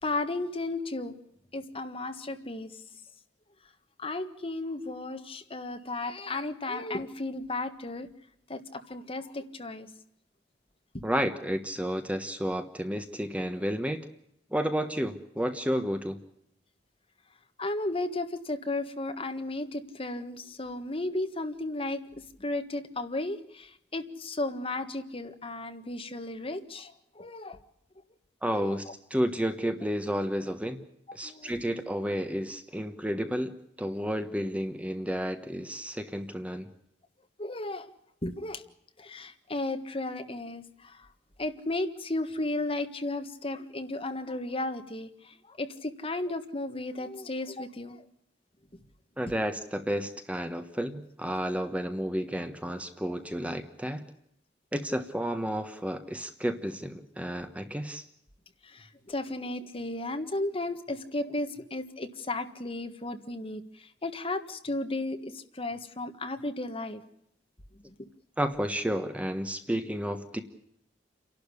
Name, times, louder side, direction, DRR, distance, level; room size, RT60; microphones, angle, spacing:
voice 1, 0.0-1.1 1.5-2.8 4.0-8.1 8.5-9.9 10.9-11.0 17.6-27.6 28.5-28.8 31.2-31.7 37.4-37.9 38.2-38.6 39.0-41.1 41.4-48.0 58.6-67.0 67.7-68.1, left 2 dB, 30° left, 7 dB, 1.6 m, -34 dB
voice 2, 11.0-14.1 14.5-16.2 28.4-28.8 29.1-30.8 31.1-33.5 33.8-36.7 49.2-54.0 54.7-58.0 68.4-70.4, equal, 10° right, 8 dB, 1.2 m, -31 dB
29.0 x 12.0 x 9.8 m, 0.76 s
head